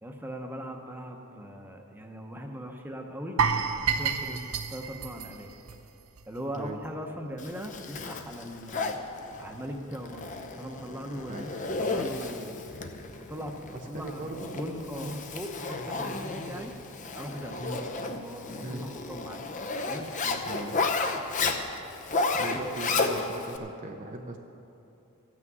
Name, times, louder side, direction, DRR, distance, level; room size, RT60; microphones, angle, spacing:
voice 1, 0.0-3.4 3.9-4.4 4.7-5.5 6.3-9.0 9.4-12.7 13.3-14.2 14.5-16.7 17.1-17.6 18.0-19.4 19.8-20.6 22.3-23.0, equal, 10° right, 2 dB, 0.9 m, -40 dB
sound 1, 3.4-6.4 6.7-6.9 7.3-7.4, right 6 dB, 80° right, 0.8 m, -29 dB
Zipper (clothing), 7.4-23.6, left 3 dB, 35° left, 0.7 m, -33 dB
voice 2, 13.7-14.6 14.9-15.2 17.6-17.9 18.6-18.9 20.4-20.9 22.3-24.4, right 2 dB, 35° right, 2 dB, 0.6 m, -39 dB
14.0 x 6.0 x 9.3 m, 2.8 s
head